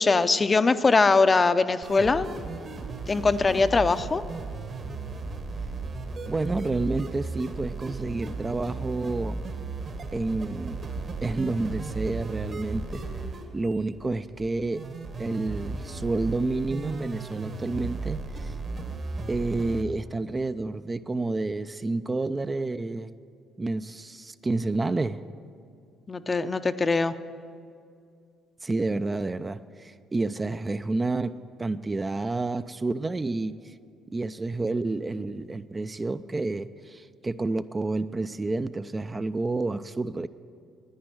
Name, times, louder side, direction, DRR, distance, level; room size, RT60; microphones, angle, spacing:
voice 1, 0.0-2.3 3.1-4.2 26.1-27.1, left 3 dB, 30° left, 11 dB, 0.6 m, -22 dB
sound 1, 1.8-19.8, right 3 dB, 50° right, 1.5 m, -35 dB
voice 2, 6.3-9.4 10.1-10.8 11.2-13.0 13.5-14.9 15.2-18.5 19.3-23.2 23.6-25.2 28.6-33.7 34.1-40.3, right 3 dB, 25° right, 11 dB, 0.4 m, -29 dB
10.5 x 9.4 x 9.1 m, 2.4 s
supercardioid pair, 65°, 0 cm